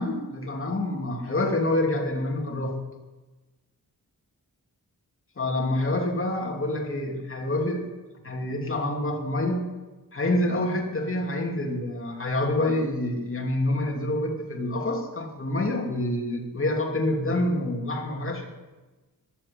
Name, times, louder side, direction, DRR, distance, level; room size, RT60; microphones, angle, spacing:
voice 1, 0.0-2.8 5.4-7.9 8.2-9.7 10.1-18.5, left 1 dB, 35° left, 1 dB, 2.9 m, -27 dB
14.0 x 11.0 x 8.1 m, 1.2 s
wide cardioid pair, 140°, 35 cm